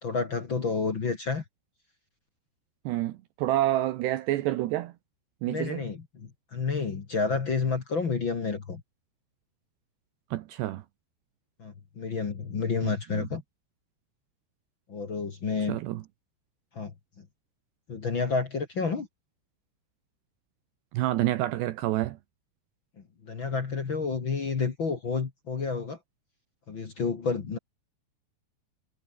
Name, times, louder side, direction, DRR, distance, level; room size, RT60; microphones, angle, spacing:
voice 1, 0.0-1.4 5.5-8.8 11.6-13.4 14.9-15.8 16.7-16.9 17.9-19.1 23.2-26.0 26.7-27.6, left 4 dB, 45° left, 1.7 m, -30 dB
voice 2, 2.9-4.9 5.4-5.8 10.3-10.8 12.8-13.3 15.7-16.0 20.9-22.2, right 15 dB, 75° right, 2.9 m, -28 dB
omnidirectional pair, 5.5 m